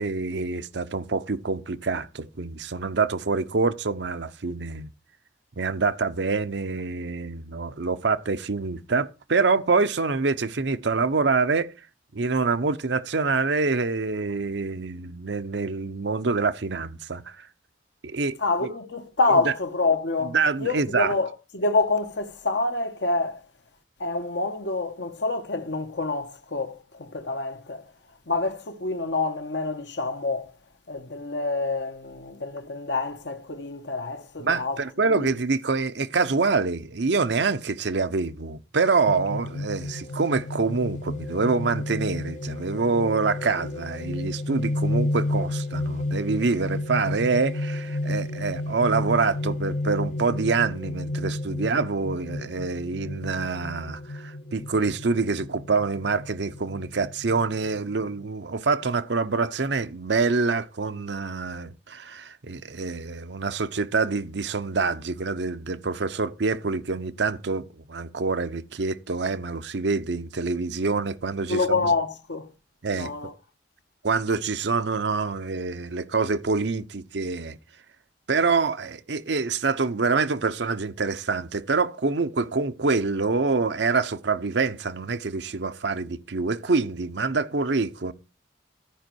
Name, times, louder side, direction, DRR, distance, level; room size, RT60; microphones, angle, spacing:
voice 1, 0.0-4.9 5.6-11.7 12.1-17.5 18.0-18.3 18.6-18.7 19.4-19.5 20.3-21.1 34.4-71.9 72.8-73.1 74.0-77.6 78.3-88.1, right 4 dB, 65° right, 0.7 m, -26 dB
voice 2, 18.4-23.4 24.0-27.8 28.3-30.5 30.9-34.8 35.1-35.3 71.4-72.5 72.9-73.3, left 3 dB, 65° left, 1.2 m, -27 dB
sound 1, 39.1-58.2, left 1 dB, 40° left, 0.5 m, -32 dB
13.5 x 5.2 x 4.6 m
head